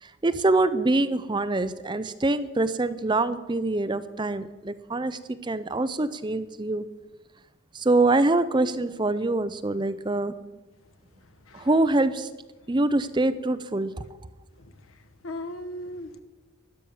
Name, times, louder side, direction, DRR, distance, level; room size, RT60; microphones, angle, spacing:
voice 1, 0.0-6.9 7.7-10.4 11.5-12.3 12.7-13.9, right 2 dB, 20° right, 0.5 m, -25 dB
voice 2, 14.6-15.0 15.2-16.2, left 1 dB, 80° left, 1.2 m, -38 dB
12.5 x 10.5 x 7.1 m
head